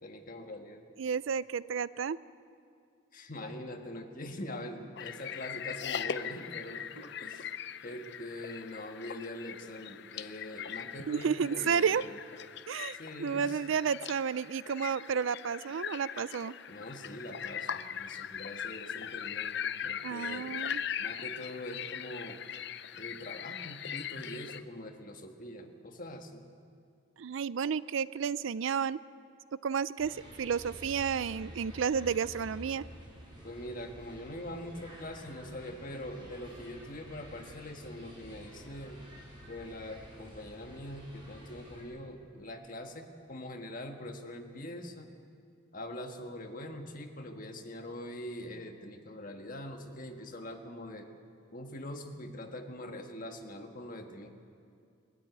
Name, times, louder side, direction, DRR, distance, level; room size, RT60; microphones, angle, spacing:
voice 1, 0.0-0.8 3.1-7.5 7.8-12.1 12.9-13.6 16.7-19.6 19.8-20.6 21.0-22.4 22.9-26.5 33.4-39.0 39.5-45.1 45.7-51.1 51.5-54.3, left 1 dB, 45° left, 4 dB, 1.6 m, -43 dB
voice 2, 1.0-2.2 11.1-12.0 12.7-16.5 20.0-20.8 27.2-29.0 29.6-32.8, right 6 dB, 80° right, 18 dB, 0.4 m, -31 dB
sound 1, 5.0-24.6, left 8 dB, 60° left, 0.6 m, -40 dB
sound 2, 30.0-41.8, equal, 25° right, 5.6 m, -50 dB
21.5 x 13.0 x 9.3 m, 2.3 s
head